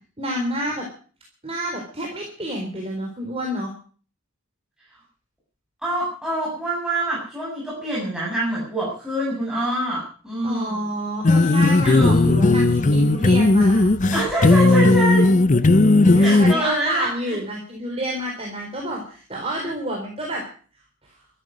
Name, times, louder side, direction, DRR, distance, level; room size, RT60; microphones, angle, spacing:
voice 1, 0.2-0.8 1.4-3.7 10.4-13.9 16.1-20.4, right 1 dB, 30° right, 0 dB, 4.1 m, -29 dB
voice 2, 5.8-10.8 11.8-12.3 14.1-15.3 16.2-17.4, right 1 dB, 5° right, -6 dB, 7.6 m, -25 dB
sound 1, 11.2-16.5, left 2 dB, 35° left, 0.6 m, -16 dB
14.0 x 14.0 x 6.4 m, 0.42 s
head